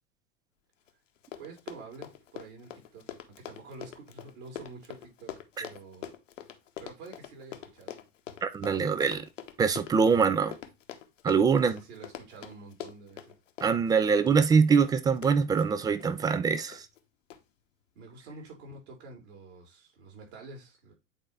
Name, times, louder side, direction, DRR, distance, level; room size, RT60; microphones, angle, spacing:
Run, 0.9-1.0 1.2-16.2 16.7-17.0 17.3-17.4, left 10 dB, 70° left, 1.1 m, -44 dB
voice 1, 1.4-3.2 3.5-6.1 6.8-8.0 11.5-13.4 18.0-20.9, right 3 dB, 55° right, 3.9 m, -48 dB
voice 2, 8.4-9.3 9.6-10.6 11.2-11.8 13.6-16.8, right 5 dB, 10° right, 0.3 m, -24 dB
8.6 x 4.2 x 3.3 m
figure-of-eight pair, 85°, 39 cm